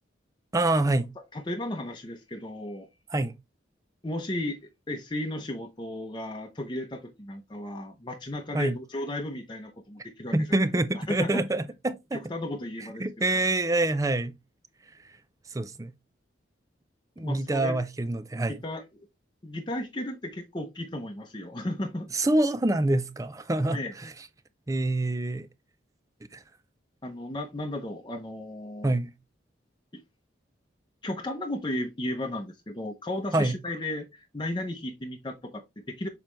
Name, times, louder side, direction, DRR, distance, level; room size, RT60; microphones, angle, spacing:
voice 1, 0.5-1.1 3.1-3.3 8.5-8.7 10.3-12.2 13.0-14.4 15.5-15.9 17.2-18.6 22.1-24.1 24.7-25.5 26.3-26.4 28.8-29.1 33.3-33.5, right 2 dB, 15° right, 0.4 m, -26 dB
voice 2, 1.3-2.9 4.0-4.6 4.9-10.4 10.9-11.4 12.1-13.0 13.3-13.4 17.2-17.7 18.5-18.8 19.4-22.1 23.7-23.9 27.0-29.0 31.0-36.1, left 1 dB, 25° left, 0.8 m, -34 dB
7.1 x 4.4 x 3.2 m
head